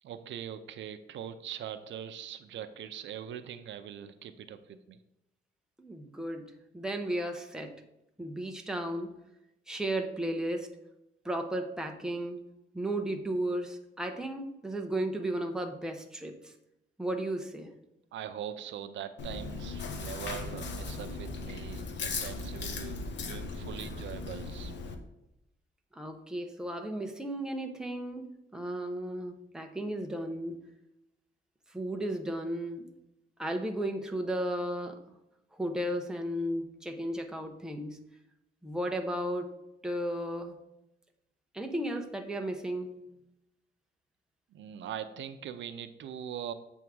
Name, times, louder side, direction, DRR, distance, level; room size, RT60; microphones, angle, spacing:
voice 1, 0.0-5.0 18.1-24.7 44.5-46.5, right 9 dB, 90° right, 9 dB, 0.6 m, -42 dB
voice 2, 5.8-7.8 8.2-9.1 9.7-10.7 11.2-12.4 12.7-16.5 17.0-17.7 25.9-28.3 28.5-30.6 31.7-32.9 33.4-35.0 35.5-38.0 38.6-40.6 41.5-43.0, right 1 dB, 5° right, 3 dB, 0.8 m, -34 dB
Chewing mastication, 19.2-24.9, left 3 dB, 75° left, 0.9 m, -38 dB
7.9 x 3.6 x 6.1 m, 0.87 s
wide cardioid pair, 150°, 19 cm